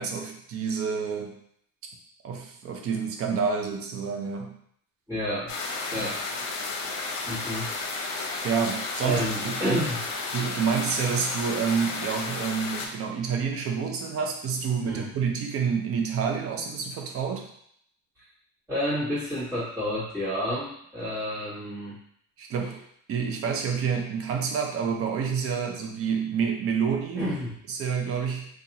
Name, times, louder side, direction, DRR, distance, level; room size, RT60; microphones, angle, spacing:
voice 1, 0.0-1.3 2.2-4.5 5.9-6.1 8.4-9.8 10.3-17.5 22.4-22.8 23.1-27.3 27.7-28.5, right 6 dB, 40° right, 2 dB, 0.6 m, -28 dB
voice 2, 5.1-5.5 5.9-6.2 7.3-7.7 9.0-10.0 14.8-15.1 18.7-22.0 27.2-27.5, equal, 10° right, -13 dB, 1.2 m, -30 dB
sound 1, 5.5-12.9, left 3 dB, 75° left, 0.8 m, -32 dB
3.9 x 2.5 x 2.8 m, 0.67 s
cardioid pair, 160°, 35 cm